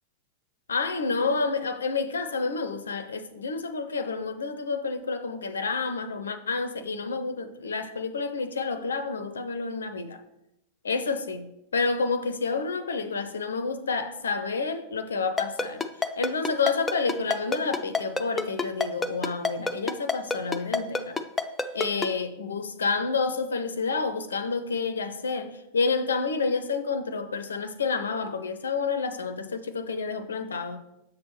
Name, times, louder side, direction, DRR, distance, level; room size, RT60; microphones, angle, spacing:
voice 1, 0.7-10.2 10.8-15.8 16.2-21.2 21.7-30.8, left 4 dB, 70° left, 0.4 m, -29 dB
Ringtone, 15.4-22.1, left 4 dB, 10° left, 0.4 m, -26 dB
7.2 x 6.1 x 3.0 m
figure-of-eight pair, 90°, 0 cm